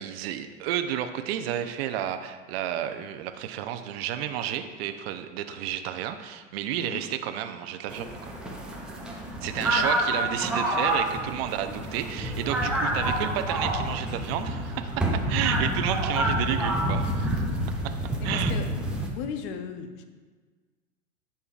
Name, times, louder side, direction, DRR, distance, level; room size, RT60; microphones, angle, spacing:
voice 1, 0.0-8.3 9.4-17.4 18.2-18.5, right 11 dB, 50° right, 8 dB, 0.6 m, -31 dB
sound 1, 7.9-19.1, right 1 dB, ahead, 0.3 m, -28 dB
voice 2, 9.6-9.9 15.7-15.8 18.2-18.7 19.2-20.0, left 8 dB, 45° left, 8 dB, 0.7 m, -37 dB
9.7 x 5.6 x 2.4 m, 1.4 s
hypercardioid pair, 120°, 40 cm